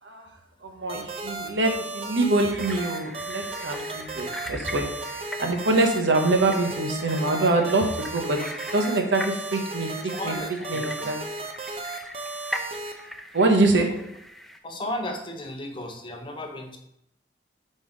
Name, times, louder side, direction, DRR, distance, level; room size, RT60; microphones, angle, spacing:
voice 1, 0.6-4.8 5.4-8.4 8.7-9.9 10.2-10.4 10.7-11.2 13.3-13.9, right 2 dB, 80° right, 3 dB, 1.0 m, -24 dB
sound 1, 0.9-12.9, right 3 dB, 30° right, 0.7 m, -35 dB
sound 2, 2.5-14.6, equal, ahead, 0.4 m, -40 dB
voice 2, 10.1-11.1 14.6-16.8, left 1 dB, 25° left, 4 dB, 0.7 m, -34 dB
5.5 x 4.2 x 5.1 m, 0.77 s
head